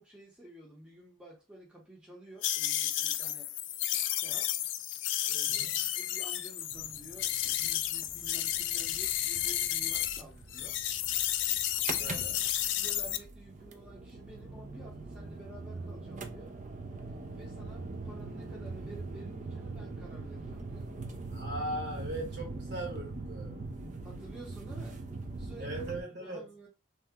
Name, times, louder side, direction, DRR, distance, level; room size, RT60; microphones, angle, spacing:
voice 1, 0.0-3.5 4.2-4.6 5.3-10.8 12.0-12.2 12.7-16.5 17.3-20.9 24.0-25.0 25.4-25.8 26.2-26.7, right 1 dB, 5° right, 0.7 m, -51 dB
sound 1, 2.4-10.2 10.5-13.2, left 12 dB, 65° left, 0.3 m, -32 dB
voice 2, 5.4-6.0 11.9-12.4 21.3-23.7 25.6-26.5, right 1 dB, 55° right, 1.3 m, -39 dB
sound 2, 6.7-26.0, right 3 dB, 35° right, 0.4 m, -42 dB
2.8 x 2.1 x 3.5 m
head